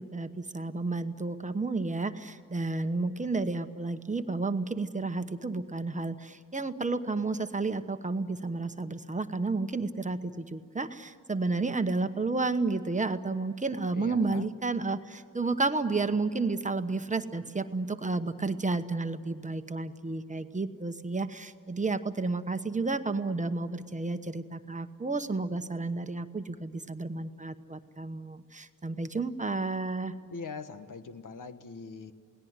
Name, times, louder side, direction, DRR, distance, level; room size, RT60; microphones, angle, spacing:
voice 1, 0.0-30.1, right 3 dB, 25° right, 9 dB, 1.0 m, -31 dB
voice 2, 14.0-14.5 30.3-32.1, left 5 dB, 75° left, 10 dB, 1.4 m, -41 dB
28.5 x 19.0 x 9.6 m, 2.2 s
wide cardioid pair, 115°, 32 cm